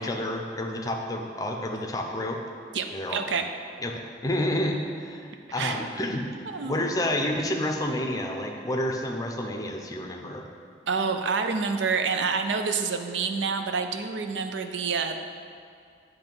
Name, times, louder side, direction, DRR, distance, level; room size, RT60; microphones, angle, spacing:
voice 1, 0.0-2.4 2.9-3.2 3.8-6.3 6.6-10.4, left 1 dB, 20° left, 2 dB, 0.5 m, -29 dB
voice 2, 2.7-3.5 5.5-5.9 6.5-6.9 10.9-15.2, right 5 dB, 80° right, 6 dB, 0.5 m, -28 dB
8.8 x 3.2 x 6.0 m, 2.3 s
head